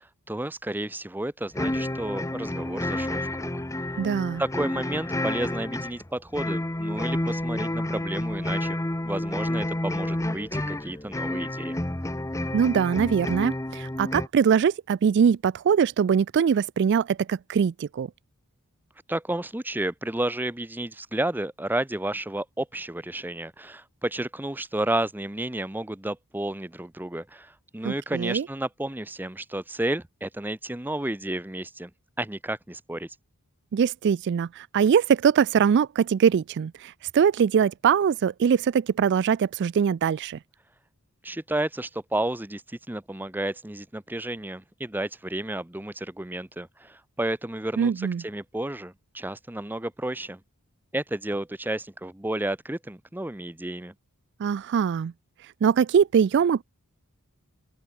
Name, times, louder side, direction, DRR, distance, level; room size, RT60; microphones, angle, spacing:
voice 1, 0.0-3.6 4.4-8.8 9.0-11.8 19.1-31.9 32.2-33.1 41.2-50.4 50.9-53.9, right 1 dB, 10° right, 0.7 m, -31 dB
sound 1, 1.5-14.3, left 1 dB, 15° left, 0.9 m, -30 dB
voice 2, 4.0-4.4 12.5-18.1 27.8-28.4 33.7-40.4 47.8-48.2 54.4-55.1 55.6-56.6, right 7 dB, 50° right, 0.3 m, -22 dB
open air
head